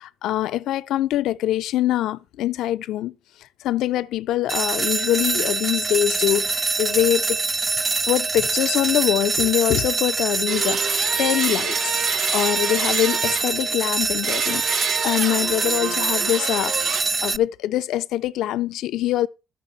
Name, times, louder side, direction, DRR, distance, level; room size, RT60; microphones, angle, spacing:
voice 1, 0.0-7.4 8.1-12.0 12.3-16.8 17.2-19.3, left 13 dB, 85° left, 0.5 m, -24 dB
sound 1, 4.5-17.4, right 4 dB, 30° right, 0.4 m, -24 dB
sound 2, 10.5-13.7 14.2-17.0, right 8 dB, 75° right, 2.3 m, -29 dB
13.5 x 5.2 x 5.6 m
cardioid pair, 90°, 0 cm